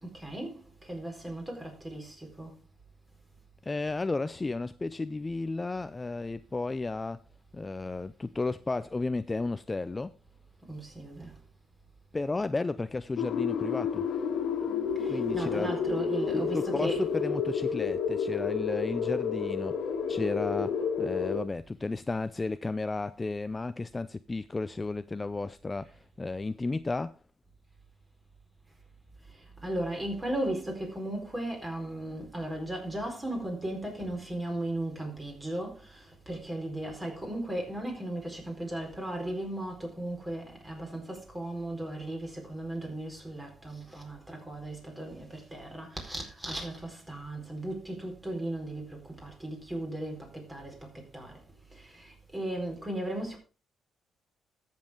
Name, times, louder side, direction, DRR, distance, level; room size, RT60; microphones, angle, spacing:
voice 1, 0.0-2.6 10.7-11.3 15.0-17.1 29.3-51.4 51.7-53.4, right 1 dB, 20° right, 4.6 m, -36 dB
voice 2, 3.6-7.2 7.5-10.1 12.1-14.1 15.1-15.7 16.3-19.8 20.1-25.9 26.2-27.2, left 3 dB, 20° left, 0.4 m, -33 dB
sound 1, 13.2-21.4, left 6 dB, 75° left, 1.6 m, -30 dB
14.0 x 7.4 x 3.7 m
cardioid pair, 90°, 0 cm